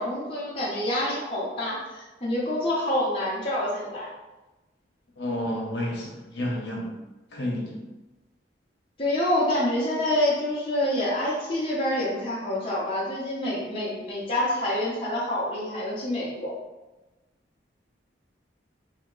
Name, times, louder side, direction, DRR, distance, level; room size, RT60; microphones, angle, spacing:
voice 1, 0.0-4.1 9.0-16.5, left 1 dB, 30° left, -7 dB, 0.8 m, -27 dB
voice 2, 5.2-7.0 7.3-7.8, left 1 dB, 70° left, -3 dB, 0.9 m, -30 dB
2.8 x 2.8 x 3.8 m, 1.1 s
head